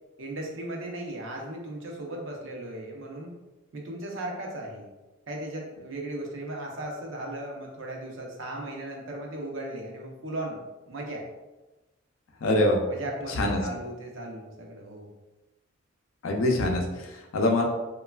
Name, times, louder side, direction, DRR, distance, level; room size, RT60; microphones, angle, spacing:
voice 1, 0.2-3.3 3.7-4.9 5.3-10.6 10.9-11.3 12.9-15.1, right 1 dB, 70° right, -1 dB, 0.6 m, -37 dB
voice 2, 12.4-12.8 13.4-13.6 16.2-17.6, left 1 dB, 80° left, 2 dB, 0.5 m, -24 dB
3.1 x 2.3 x 2.2 m, 1.1 s
head